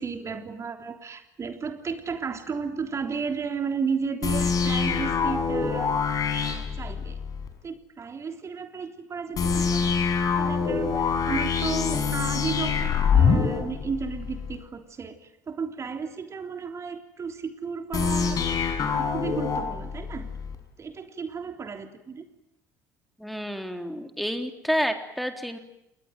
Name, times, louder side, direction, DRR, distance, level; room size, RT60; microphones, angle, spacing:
voice 1, 0.0-7.2 7.6-9.9 10.4-20.3 20.8-22.3, right 5 dB, 30° right, 5 dB, 3.4 m, -34 dB
sound 1, 4.2-7.5 9.4-14.6 17.9-20.6, left 5 dB, 40° left, 5.9 m, -25 dB
voice 2, 23.2-25.6, equal, ahead, 5 dB, 3.7 m, -29 dB
29.5 x 20.5 x 9.3 m, 0.87 s
figure-of-eight pair, 55°, 9 cm